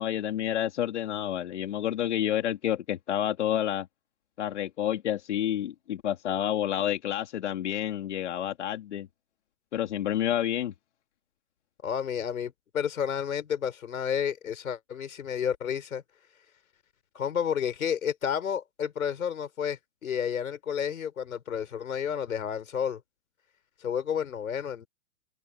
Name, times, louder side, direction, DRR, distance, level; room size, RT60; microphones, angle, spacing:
voice 1, 0.0-3.9 4.4-9.1 9.7-10.7, left 11 dB, 55° left, 2.8 m, -29 dB
voice 2, 11.8-16.0 17.1-23.0 23.8-24.9, left 8 dB, 85° left, 5.7 m, -31 dB
open air
hypercardioid pair, 170°, 41 cm